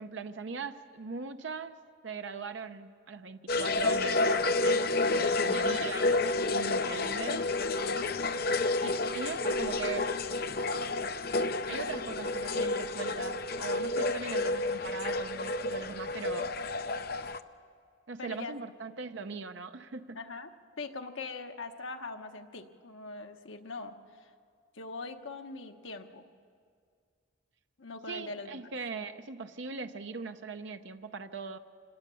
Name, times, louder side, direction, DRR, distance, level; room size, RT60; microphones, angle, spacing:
voice 1, 0.0-1.8 2.0-7.4 8.8-10.1 11.7-16.5 18.1-20.2 28.1-31.6, right 4 dB, 70° right, 8 dB, 0.7 m, -40 dB
sound 1, 3.5-17.4, left 2 dB, 50° left, 0.6 m, -30 dB
voice 2, 18.2-18.6 20.1-20.5 20.8-24.3 24.7-26.3 27.8-28.6, left 3 dB, 80° left, 5 dB, 1.1 m, -42 dB
25.5 x 18.5 x 6.9 m, 2.2 s
head